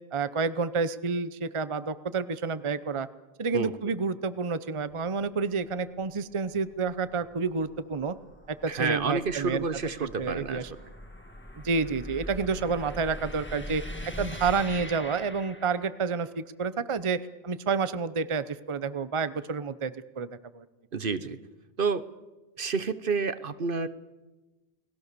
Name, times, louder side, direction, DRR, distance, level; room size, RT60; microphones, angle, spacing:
voice 1, 0.1-3.1 3.4-8.2 8.5-9.6 10.0-10.7 11.6-13.8 14.2-20.6, right 4 dB, 30° right, 14 dB, 0.8 m, -29 dB
sound 1, 4.8-16.2, equal, 10° left, 1.8 m, -43 dB
voice 2, 8.7-10.6 20.9-21.4 21.8-22.1 22.6-23.9, right 4 dB, 55° right, 13 dB, 1.1 m, -29 dB
29.5 x 19.5 x 6.8 m, 1.1 s
omnidirectional pair, 1.1 m